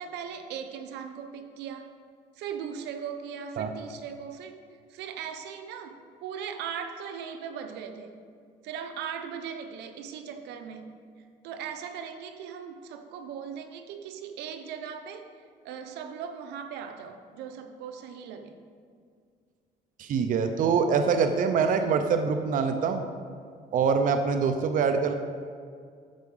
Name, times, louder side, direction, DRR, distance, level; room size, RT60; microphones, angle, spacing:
voice 1, 0.0-1.9 2.4-4.6 4.9-5.9 6.2-8.1 8.6-10.9 11.4-15.2 15.6-18.6, right 7 dB, 85° right, 6 dB, 0.8 m, -38 dB
voice 2, 20.0-23.0 23.7-25.1, right 6 dB, 50° right, 7 dB, 0.6 m, -24 dB
11.5 x 4.8 x 5.4 m, 2.2 s
cardioid pair, 110°, 17 cm